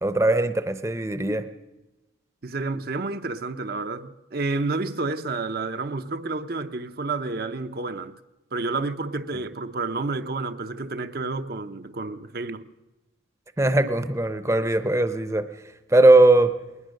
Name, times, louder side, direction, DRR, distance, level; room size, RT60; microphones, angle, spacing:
voice 1, 0.0-1.5 13.6-15.5 15.9-16.5, right 2 dB, 15° right, 0.7 m, -19 dB
voice 2, 2.4-8.1 8.5-12.7, right 3 dB, 50° right, 0.7 m, -30 dB
20.5 x 19.5 x 6.5 m
head